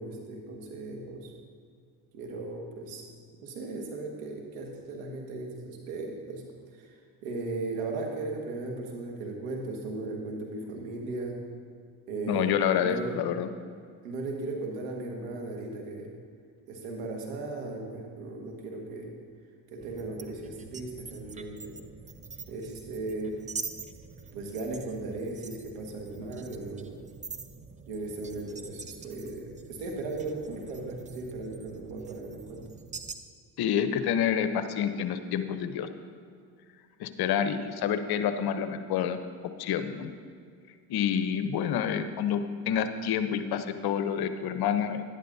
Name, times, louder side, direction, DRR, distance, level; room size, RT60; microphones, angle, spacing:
voice 1, 0.0-1.3 2.1-3.1 3.4-6.4 6.7-6.9 7.2-11.4 12.1-13.2 14.0-16.1 16.7-19.1 19.7-21.8 22.5-23.4 24.3-27.0 27.8-32.6, right 2 dB, 80° right, 1 dB, 1.7 m, -37 dB
voice 2, 12.3-13.5 33.6-35.9 37.0-39.2 39.6-40.1 40.9-45.0, left 8 dB, 50° left, 10 dB, 0.8 m, -28 dB
sound 1, 19.8-33.1, right 4 dB, 15° right, 0.5 m, -45 dB
11.0 x 11.0 x 2.7 m, 2.2 s
hypercardioid pair, 75°, 48 cm